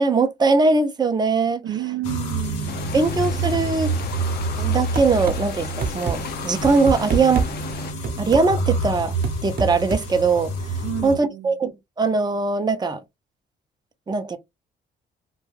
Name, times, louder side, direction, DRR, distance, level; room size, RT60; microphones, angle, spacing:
voice 1, 0.0-1.6 2.9-3.9 4.6-7.5 8.2-9.1 9.4-10.5 11.0-13.0 14.1-14.4, right 4 dB, 20° right, 0.6 m, -21 dB
voice 2, 1.6-3.3 10.8-11.5, right 13 dB, 75° right, 0.5 m, -31 dB
sound 1, 2.0-11.2, right 2 dB, 90° left, 0.8 m, -28 dB
sound 2, 2.7-7.9, left 7 dB, 50° left, 0.6 m, -36 dB
sound 3, 5.0-5.4 5.8-6.2 6.6-7.5 8.0-8.5 9.2-10.1, right 5 dB, 45° right, 0.8 m, -24 dB
2.3 x 2.2 x 3.2 m
supercardioid pair, 65°, 20 cm